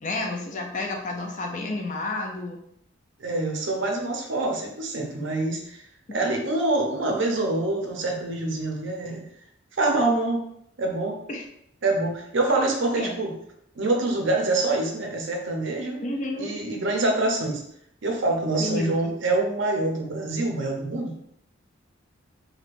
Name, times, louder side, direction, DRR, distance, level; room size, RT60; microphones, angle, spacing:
voice 1, 0.0-2.6 11.3-11.4 12.9-13.2 16.0-16.5 18.6-19.1, left 2 dB, 35° left, 2 dB, 0.4 m, -30 dB
voice 2, 3.2-5.8 6.1-9.2 9.8-10.4 10.8-11.2 11.8-13.3 13.7-16.0 16.4-17.6 18.0-21.1, right 2 dB, 65° right, 1 dB, 0.6 m, -25 dB
3.2 x 2.7 x 2.5 m, 0.72 s
head